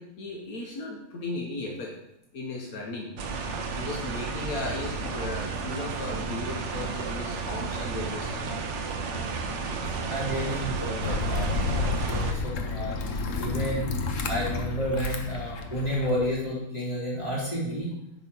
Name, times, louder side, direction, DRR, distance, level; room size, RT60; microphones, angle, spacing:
voice 1, 0.0-1.9 2.3-3.1 3.7-8.3, left 2 dB, 80° left, -1 dB, 1.7 m, -36 dB
sound 1, 3.2-12.3, right 4 dB, 60° right, 1.1 m, -32 dB
voice 2, 10.1-12.9 13.4-14.0 14.2-17.9, equal, 25° left, -8 dB, 3.6 m, -31 dB
sound 2, 11.0-16.3, left 3 dB, 65° left, 1.2 m, -30 dB
9.0 x 5.5 x 4.5 m, 0.83 s
omnidirectional pair, 1.5 m